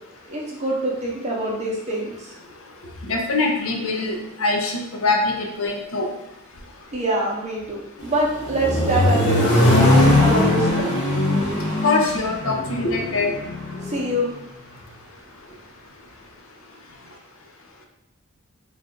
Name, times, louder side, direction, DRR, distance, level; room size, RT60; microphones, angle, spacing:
voice 1, 0.3-2.4 6.9-9.8 10.2-10.9 13.9-14.3, right 1 dB, 30° right, -3 dB, 0.7 m, -25 dB
voice 2, 3.0-6.1 11.8-13.3, left 3 dB, 70° left, 1 dB, 0.6 m, -23 dB
Accelerating revving vroom, 8.0-14.0, left 1 dB, 35° left, 1.0 m, -20 dB
3.3 x 2.5 x 3.7 m, 0.85 s
head